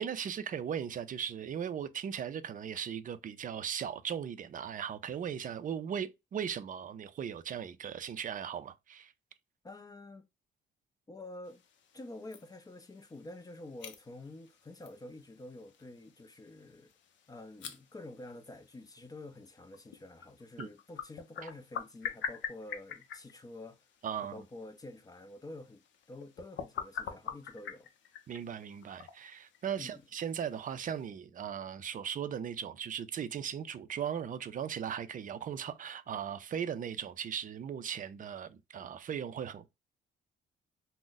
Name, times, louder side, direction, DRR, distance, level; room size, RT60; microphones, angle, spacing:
voice 1, 0.0-9.1 20.6-20.7 24.0-24.4 28.3-39.7, right 8 dB, 40° right, 0.4 m, -38 dB
voice 2, 9.6-10.2 11.1-11.6 11.9-16.9 17.3-23.8 24.3-25.8 26.1-27.9 29.8-30.0, left 2 dB, 20° left, 0.4 m, -48 dB
sound 1, 11.4-31.1, left 8 dB, 70° left, 0.6 m, -47 dB
2.5 x 2.1 x 3.8 m
cardioid pair, 90°, 20 cm